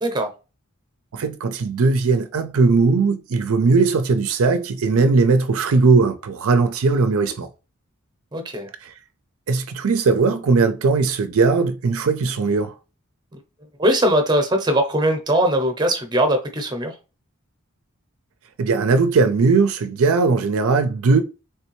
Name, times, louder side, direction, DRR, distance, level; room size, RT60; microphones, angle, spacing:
voice 1, 1.1-7.5 8.8-8.9 9.5-12.7 18.6-21.2, right 4 dB, 70° right, 0.4 m, -19 dB
voice 2, 8.3-8.7 13.8-16.9, right 1 dB, 20° right, 0.7 m, -20 dB
3.3 x 3.2 x 3.0 m
head